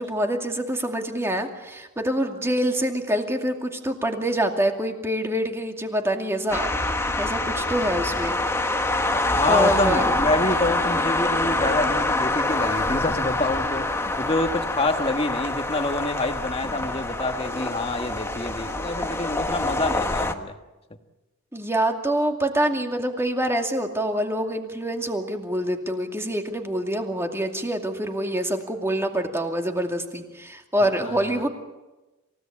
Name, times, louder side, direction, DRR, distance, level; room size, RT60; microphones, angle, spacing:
voice 1, 0.0-6.8 7.2-8.4 9.5-10.1 21.5-31.5, right 1 dB, 10° right, 3 dB, 2.4 m, -26 dB
sound 1, 6.5-20.3, left 2 dB, 10° left, 1.3 m, -25 dB
voice 2, 9.4-20.5 30.8-31.4, left 2 dB, 30° left, 6 dB, 1.6 m, -27 dB
28.0 x 17.0 x 8.6 m, 1.1 s
head